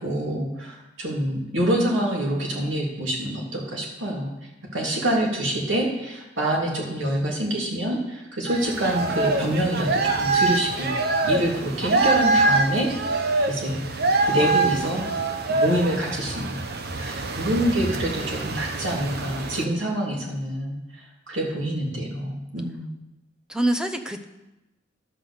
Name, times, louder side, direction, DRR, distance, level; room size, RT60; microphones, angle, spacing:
voice 1, 0.0-4.3 4.7-10.9 11.2-13.8 14.2-15.0 15.6-16.6 16.9-20.8 21.3-22.9, right 1 dB, 75° right, -2 dB, 2.9 m, -26 dB
sound 1, 8.5-19.6, right 3 dB, 55° right, 0.9 m, -25 dB
voice 2, 17.4-17.7 23.5-24.3, right 1 dB, 5° right, 7 dB, 0.7 m, -26 dB
12.5 x 5.9 x 6.8 m, 0.99 s
head